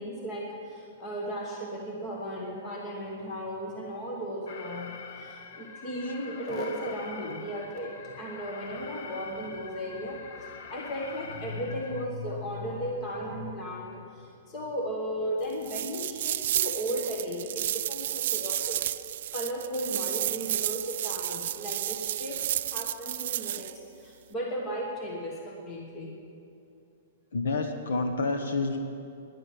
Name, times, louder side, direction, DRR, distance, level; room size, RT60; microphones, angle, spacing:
voice 1, 0.0-18.8 19.3-26.1, equal, 20° left, -1 dB, 1.3 m, -35 dB
Alarm, 4.5-12.1, left 5 dB, 45° left, 0.8 m, -44 dB
sound 1, 15.6-23.7, right 12 dB, 45° right, 0.4 m, -31 dB
voice 2, 27.3-28.8, left 3 dB, 75° left, 5 dB, 1.3 m, -28 dB
13.0 x 11.0 x 9.5 m, 2.6 s
hypercardioid pair, 180°, 0 cm